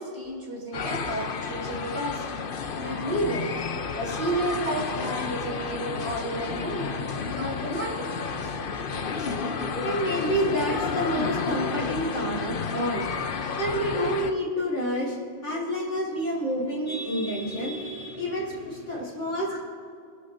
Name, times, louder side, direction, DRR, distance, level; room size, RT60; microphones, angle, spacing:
voice 1, 0.0-2.2 2.8-3.5 3.9-8.5 9.2-9.3 19.5-19.6, right 1 dB, 50° right, -4 dB, 4.2 m, -32 dB
sound 1, 0.7-14.3, left 5 dB, 50° left, 0.9 m, -31 dB
voice 2, 9.8-13.1 13.6-15.2 15.4-19.6, equal, 85° left, -12 dB, 5.0 m, -28 dB
29.5 x 11.5 x 2.7 m, 2.3 s
omnidirectional pair, 1.3 m